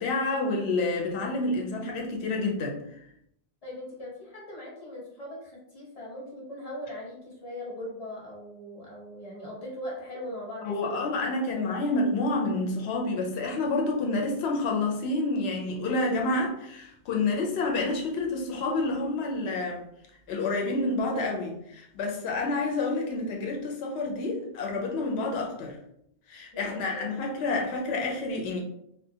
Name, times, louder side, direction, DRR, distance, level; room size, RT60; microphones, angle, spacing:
voice 1, 0.0-2.8 10.6-19.8 20.3-25.8 26.3-28.6, left 2 dB, 75° left, 0 dB, 0.8 m, -29 dB
voice 2, 3.6-11.8 26.5-27.1, left 1 dB, 35° left, -4 dB, 0.8 m, -40 dB
2.4 x 2.1 x 2.7 m, 0.74 s
omnidirectional pair, 1.1 m